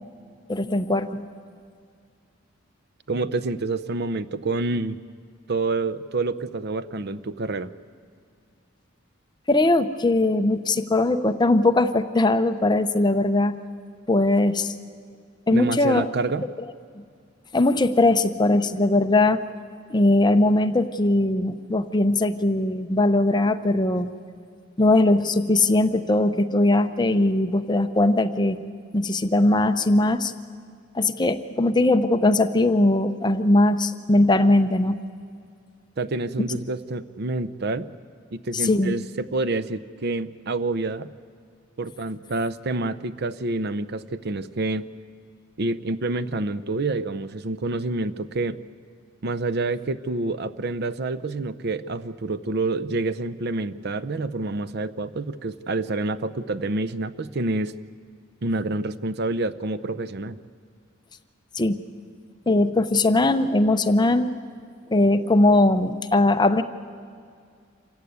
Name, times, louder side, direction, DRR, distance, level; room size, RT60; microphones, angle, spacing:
voice 1, 0.5-1.2 9.5-13.6 14.1-14.7 15.5-16.0 17.0-17.1 17.5-19.4 19.9-24.1 24.8-28.6 28.9-30.3 30.9-35.0 38.5-38.9 61.6-61.8 62.5-64.3 64.9-66.6, left 2 dB, 20° left, 9 dB, 0.7 m, -20 dB
voice 2, 3.1-5.0 5.5-7.7 15.5-16.4 36.0-37.9 38.3-41.1 41.8-44.9 45.6-48.6 49.2-57.7 58.4-60.4, right 3 dB, 55° right, 15 dB, 0.6 m, -28 dB
26.5 x 15.5 x 9.5 m, 2.2 s
head